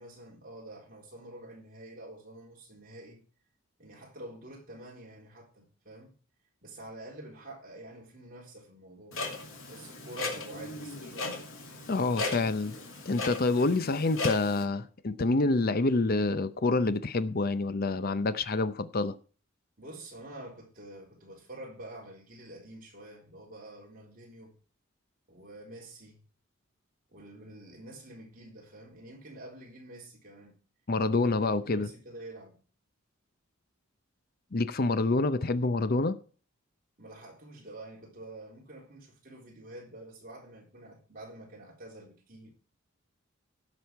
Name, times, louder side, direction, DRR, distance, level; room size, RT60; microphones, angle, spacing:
voice 1, 0.0-3.2 3.8-6.2 6.6-9.2 9.7-11.4 19.8-24.5 25.3-26.2 27.1-30.5 31.0-32.6 37.0-42.5, right 1 dB, 40° right, 3.8 m, -47 dB
Clock, 9.1-14.6, left 2 dB, 70° left, 2.6 m, -37 dB
voice 2, 11.9-12.8 13.1-19.1 30.9-31.9 34.5-36.2, left 3 dB, 45° left, 0.6 m, -27 dB
16.5 x 6.3 x 4.6 m
head